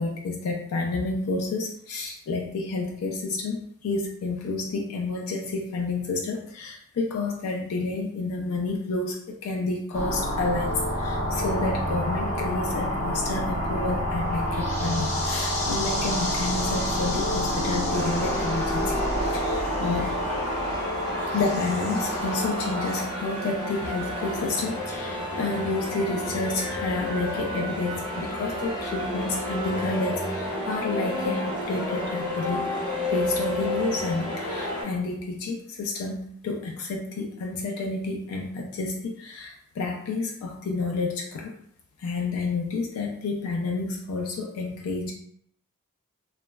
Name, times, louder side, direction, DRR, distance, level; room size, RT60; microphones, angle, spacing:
voice 1, 0.0-20.1 21.3-32.7 33.1-41.5 42.0-45.1, left 3 dB, 85° left, 1 dB, 0.3 m, -30 dB
sound 1, 9.9-23.0, equal, 30° left, 0.7 m, -28 dB
sound 2, 11.3-22.2, left 2 dB, 15° right, 1.1 m, -41 dB
sound 3, 17.9-34.8, left 1 dB, 5° left, 1.3 m, -31 dB
2.9 x 2.1 x 2.2 m, 0.71 s
head